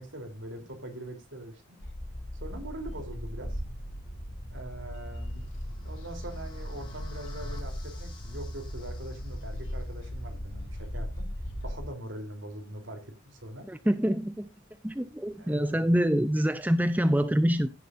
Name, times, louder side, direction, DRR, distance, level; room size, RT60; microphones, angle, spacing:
voice 1, 0.0-1.8 2.3-3.6 4.5-5.5 5.8-11.3 11.6-13.7 15.3-16.0, right 1 dB, 65° right, 3.4 m, -42 dB
sound 1, 1.8-11.9, equal, 80° left, 5.2 m, -38 dB
rise-crash, 5.0-10.1, left 2 dB, 25° left, 3.6 m, -53 dB
voice 2, 13.7-14.5 14.8-17.7, equal, 10° right, 0.5 m, -25 dB
16.0 x 7.7 x 2.6 m
head